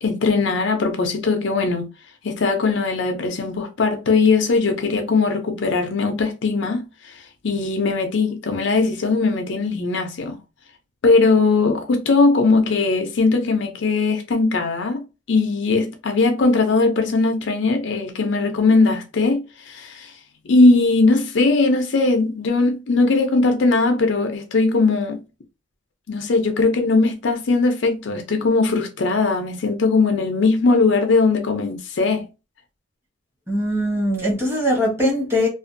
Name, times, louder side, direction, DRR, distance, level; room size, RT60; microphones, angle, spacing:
voice 1, 0.0-1.8 2.2-10.4 11.0-15.0 15.3-20.1 20.4-25.2 26.1-32.2, left 3 dB, 65° left, 0.5 m, -19 dB
voice 2, 33.5-35.5, equal, 15° right, 1.1 m, -21 dB
2.5 x 2.3 x 2.5 m
head